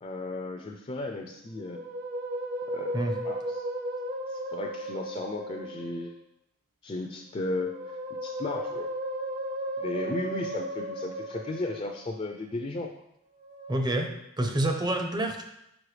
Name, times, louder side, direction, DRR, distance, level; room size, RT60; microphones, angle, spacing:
voice 1, 0.0-1.8 2.7-3.0 3.2-3.6 4.3-6.1 6.8-8.9 9.8-12.9, left 2 dB, 30° left, 2 dB, 0.4 m, -35 dB
Musical instrument, 1.5-6.1 7.4-12.2 13.4-13.8, right 1 dB, 45° right, 0.9 m, -35 dB
voice 2, 13.7-14.1 14.4-15.4, right 1 dB, 20° right, 4 dB, 0.6 m, -27 dB
6.2 x 5.5 x 3.3 m, 0.80 s
head